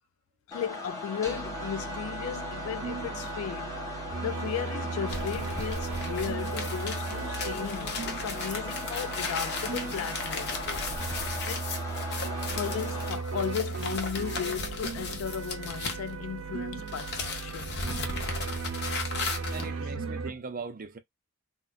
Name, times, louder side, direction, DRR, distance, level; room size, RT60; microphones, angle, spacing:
voice 1, 0.5-10.9 11.5-11.7 12.5-17.7 19.6-20.1, left 8 dB, 70° left, 0.3 m, -36 dB
sound 1, 0.5-13.1, left 3 dB, 15° left, 1.1 m, -39 dB
sound 2, 1.3-20.3, right 5 dB, 80° right, 0.7 m, -37 dB
sound 3, 5.1-16.5 16.8-19.7, left 4 dB, 55° left, 0.8 m, -36 dB
voice 2, 19.5-21.0, right 4 dB, 40° right, 0.6 m, -39 dB
2.4 x 2.2 x 3.8 m
head